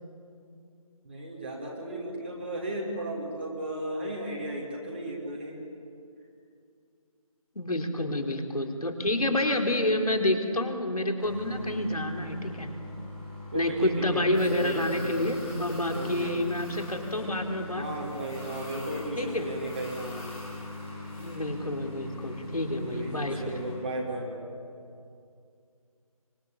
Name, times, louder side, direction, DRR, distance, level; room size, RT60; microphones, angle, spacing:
voice 1, 1.0-5.6 13.5-15.2 15.9-16.7 17.7-20.3 22.9-24.4, right 1 dB, 15° right, -3 dB, 2.7 m, -35 dB
voice 2, 7.6-12.7 13.5-17.8 19.2-19.5 21.2-23.6, left 1 dB, 75° left, 3 dB, 4.0 m, -28 dB
sound 1, 11.2-23.7, left 2 dB, 15° left, 7.9 m, -41 dB
25.0 x 23.0 x 8.7 m, 2.4 s
figure-of-eight pair, 175°, 19 cm